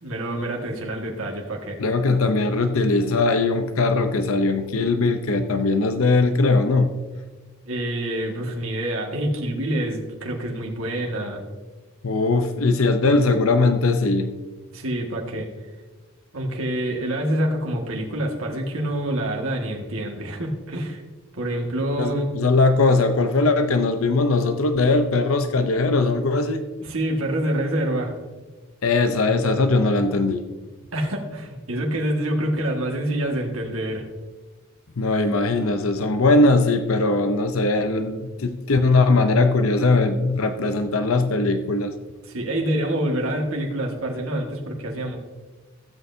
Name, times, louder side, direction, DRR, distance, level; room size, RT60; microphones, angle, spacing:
voice 1, 0.0-1.8 7.7-11.4 14.7-15.5 16.3-21.0 21.3-22.3 26.8-28.2 30.9-34.0 42.3-45.2, right 1 dB, 90° right, 0 dB, 1.9 m, -26 dB
voice 2, 1.8-6.9 12.0-14.3 22.0-26.6 28.8-30.4 35.0-41.9, left 3 dB, 85° left, 8 dB, 0.7 m, -20 dB
16.0 x 8.0 x 2.8 m, 1.3 s
head